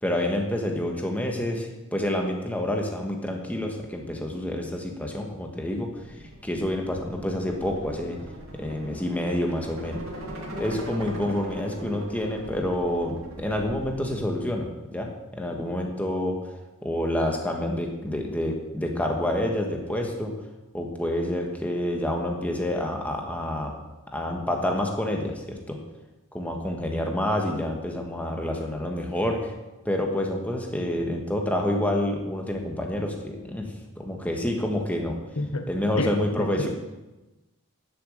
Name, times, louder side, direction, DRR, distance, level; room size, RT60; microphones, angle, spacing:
voice 1, 0.0-5.9 6.4-8.2 8.5-10.0 10.6-16.4 16.8-20.3 20.7-23.7 24.1-25.8 26.3-29.5 29.8-33.7 34.0-35.2 35.7-36.7, left 1 dB, 5° left, 1 dB, 1.4 m, -28 dB
sound 1, 6.0-14.1, equal, 65° right, 2.3 m, -40 dB
voice 2, 35.4-35.7 36.0-36.1 36.4-36.7, left 2 dB, 80° left, 7 dB, 1.1 m, -29 dB
10.5 x 7.7 x 6.6 m, 1.1 s
head